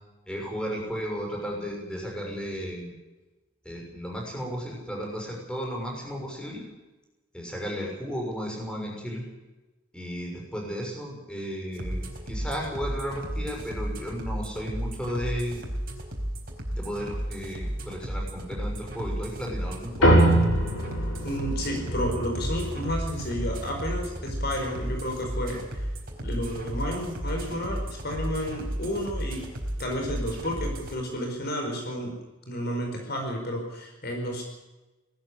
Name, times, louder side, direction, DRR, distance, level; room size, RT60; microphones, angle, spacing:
voice 1, 0.3-2.9 3.6-6.6 7.3-9.2 9.9-15.6 16.7-20.4, equal, 5° left, -1 dB, 6.1 m, -34 dB
sound 1, 11.7-30.9, equal, 45° right, 4.5 m, -33 dB
sound 2, 20.0-24.8, right 1 dB, 80° left, 7.1 m, -25 dB
voice 2, 21.2-25.9 26.2-29.4 29.8-32.1 32.5-34.4, equal, 50° left, 3 dB, 4.8 m, -31 dB
19.5 x 14.5 x 9.9 m, 1.1 s
head